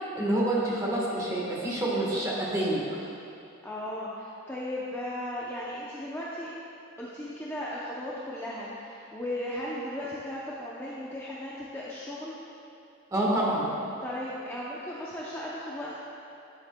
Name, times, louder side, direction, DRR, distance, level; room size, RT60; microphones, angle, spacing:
voice 1, 0.1-2.8 13.1-13.7, right 1 dB, 15° right, -5 dB, 1.3 m, -27 dB
voice 2, 3.6-6.5 7.0-12.3 14.0-16.0, left 1 dB, 10° left, -7 dB, 0.6 m, -36 dB
10.5 x 7.6 x 2.2 m, 2.8 s
head